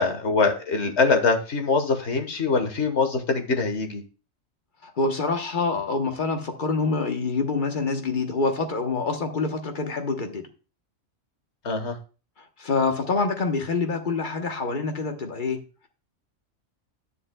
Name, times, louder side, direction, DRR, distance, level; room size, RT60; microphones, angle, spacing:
voice 1, 0.0-4.0 11.6-12.0, left 4 dB, 60° left, 6 dB, 1.6 m, -23 dB
voice 2, 4.8-10.5 12.6-15.6, left 4 dB, 40° left, 5 dB, 1.2 m, -26 dB
10.5 x 9.8 x 2.3 m, 0.34 s
omnidirectional pair, 1.3 m